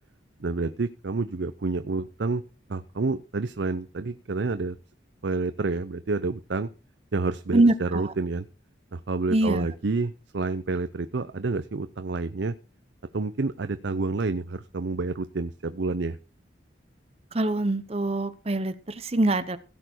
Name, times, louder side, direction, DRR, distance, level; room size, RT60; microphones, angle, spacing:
voice 1, 0.4-2.4 2.7-4.8 5.2-6.7 7.1-8.4 8.9-12.5 13.1-16.2, right 3 dB, 65° right, 11 dB, 0.6 m, -29 dB
voice 2, 7.5-8.1 9.3-9.7 17.3-19.6, right 2 dB, 30° right, 12 dB, 0.9 m, -24 dB
16.5 x 6.9 x 4.5 m, 0.34 s
head